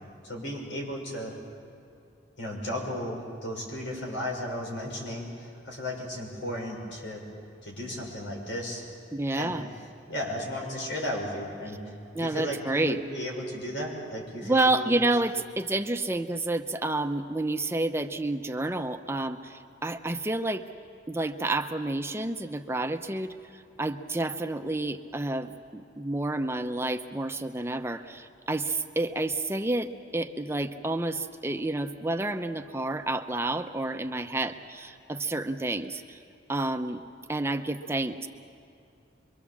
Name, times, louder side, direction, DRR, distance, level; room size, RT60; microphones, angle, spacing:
voice 1, 0.2-1.4 2.4-7.2 7.6-8.8 9.3-9.5 10.1-14.9, equal, 85° left, -1 dB, 6.2 m, -35 dB
voice 2, 9.1-9.7 12.1-13.0 14.4-20.7 21.1-36.2 36.5-37.0 37.3-38.3, right 2 dB, 15° right, 7 dB, 0.7 m, -29 dB
26.0 x 23.5 x 7.2 m, 2.6 s
head